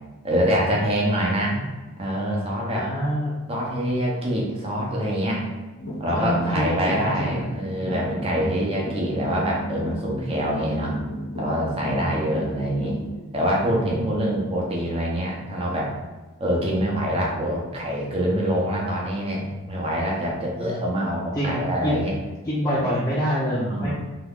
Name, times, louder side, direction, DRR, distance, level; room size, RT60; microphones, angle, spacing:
voice 1, 0.2-1.6 2.0-2.9 3.5-5.4 6.0-10.9 11.4-13.0 13.3-15.9 16.4-22.1 22.8-22.9 23.5-23.9, equal, 25° right, -3 dB, 0.7 m, -25 dB
voice 2, 1.2-1.7 2.7-3.4 6.1-7.6 20.6-20.8 21.3-22.0 22.5-23.9, equal, 15° left, -8 dB, 0.5 m, -26 dB
sound 1, 5.8-13.2, right 1 dB, 70° left, 0.6 m, -33 dB
2.9 x 2.4 x 3.6 m, 1.2 s
head